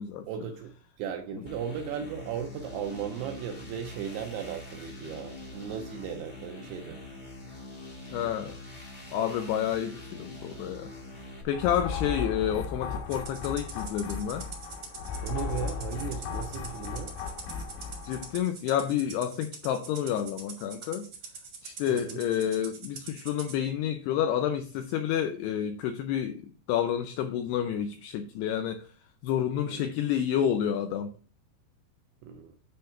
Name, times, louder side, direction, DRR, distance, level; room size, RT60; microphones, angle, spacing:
voice 1, 0.3-7.0 15.2-17.2 21.9-22.2 29.7-29.9 32.2-32.6, right 8 dB, 80° right, 2.5 m, -36 dB
sound 1, 1.4-11.4, left 2 dB, 45° left, 0.5 m, -44 dB
voice 2, 8.1-8.6 9.1-10.9 11.4-14.5 18.1-21.1 21.6-28.9 29.2-31.1, left 9 dB, 85° left, 2.4 m, -29 dB
sound 2, 11.5-18.4, left 5 dB, 70° left, 2.5 m, -36 dB
Rattle (instrument), 13.1-23.6, right 5 dB, 55° right, 1.5 m, -44 dB
9.9 x 3.3 x 5.6 m
omnidirectional pair, 5.4 m